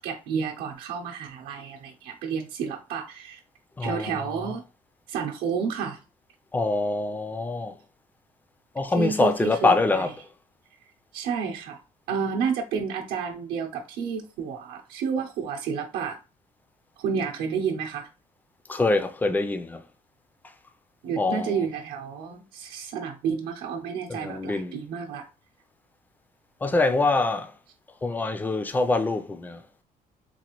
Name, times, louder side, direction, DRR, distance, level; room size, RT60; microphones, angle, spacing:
voice 1, 0.0-3.4 3.8-4.6 5.1-6.0 9.0-10.1 11.1-11.8 12.1-16.2 17.0-18.1 21.0-25.3, right 6 dB, 85° right, 0.7 m, -30 dB
voice 2, 3.8-4.3 6.5-7.7 8.8-10.1 18.7-19.8 21.2-21.5 24.1-24.8 26.6-27.5 28.0-29.6, left 3 dB, 10° left, 0.3 m, -24 dB
4.0 x 2.4 x 2.9 m
cardioid pair, 150°, 16 cm